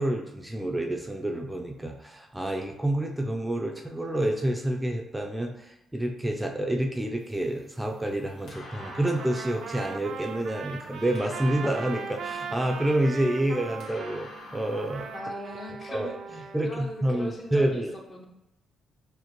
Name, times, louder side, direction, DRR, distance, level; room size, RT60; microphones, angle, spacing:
voice 1, 0.0-15.1 15.9-17.9, right 1 dB, 10° right, 1 dB, 0.5 m, -28 dB
sound 1, 7.2-15.2, left 1 dB, 75° left, 1.4 m, -48 dB
Trumpet, 8.7-14.2 14.7-16.7, right 5 dB, 70° right, 0.4 m, -39 dB
voice 2, 15.1-17.8 18.1-18.3, equal, 35° left, 0 dB, 0.9 m, -39 dB
6.3 x 2.1 x 3.0 m, 0.92 s
cardioid pair, 90°, 0 cm